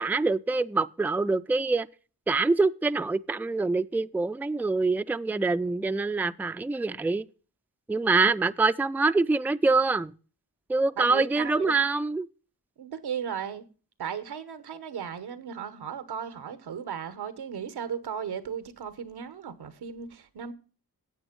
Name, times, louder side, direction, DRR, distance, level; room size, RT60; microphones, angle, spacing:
voice 1, 0.0-1.9 2.3-7.2 7.9-10.1 10.7-12.3, right 3 dB, 5° right, 0.4 m, -25 dB
voice 2, 11.0-11.7 12.8-13.6 14.0-20.5, right 7 dB, 85° right, 1.1 m, -36 dB
9.4 x 8.0 x 5.2 m
cardioid pair, 45°, 38 cm